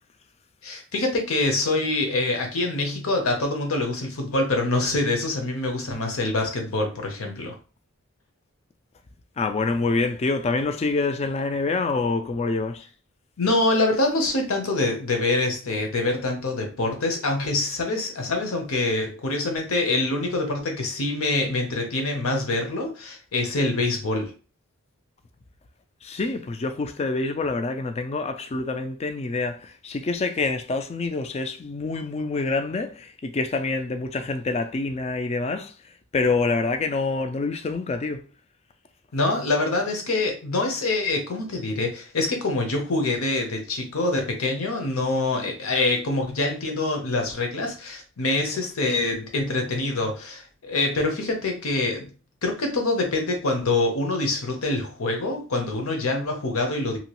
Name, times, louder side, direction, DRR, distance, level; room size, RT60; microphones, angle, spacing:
voice 1, 0.6-7.6 13.4-24.3 39.1-52.1 52.4-57.0, left 2 dB, 80° left, 0.8 m, -25 dB
voice 2, 9.4-12.9 26.0-38.2, left 3 dB, 30° left, 0.3 m, -26 dB
2.9 x 2.3 x 2.9 m
head